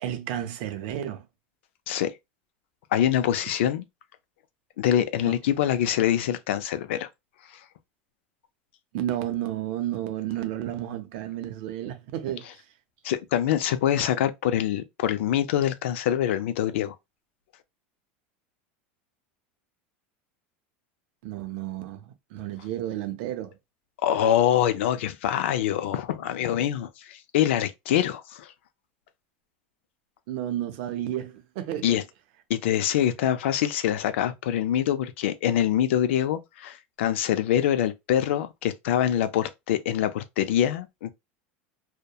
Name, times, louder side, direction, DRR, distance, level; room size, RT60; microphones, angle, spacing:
voice 1, 0.0-1.3 5.3-5.4 8.9-12.7 21.2-23.6 30.3-32.0, right 12 dB, 60° right, 0.5 m, -32 dB
voice 2, 2.9-3.8 4.8-7.1 13.0-16.9 24.0-28.5 31.8-32.0 32.5-41.1, left 11 dB, 90° left, 0.4 m, -25 dB
2.7 x 2.1 x 2.2 m
supercardioid pair, 160°, 6 cm